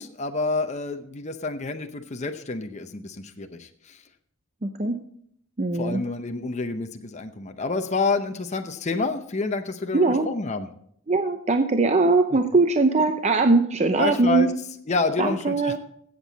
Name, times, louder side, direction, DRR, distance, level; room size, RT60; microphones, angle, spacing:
voice 1, 0.0-4.0 5.8-10.7 14.0-14.5 14.9-15.8, left 3 dB, 35° left, 6 dB, 0.7 m, -28 dB
voice 2, 4.6-5.0 5.6-6.0 9.9-10.3 11.1-14.5 15.2-15.8, right 3 dB, 30° right, 7 dB, 0.6 m, -21 dB
15.5 x 7.6 x 4.0 m, 0.68 s
head